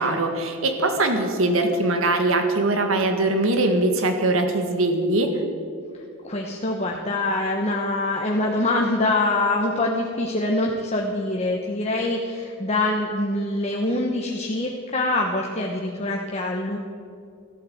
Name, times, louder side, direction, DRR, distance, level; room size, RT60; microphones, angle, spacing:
voice 1, 0.0-5.3, right 2 dB, 75° right, 5 dB, 1.9 m, -22 dB
voice 2, 6.2-16.8, left 2 dB, 30° left, 0 dB, 1.1 m, -24 dB
14.0 x 12.5 x 7.9 m, 2.4 s
head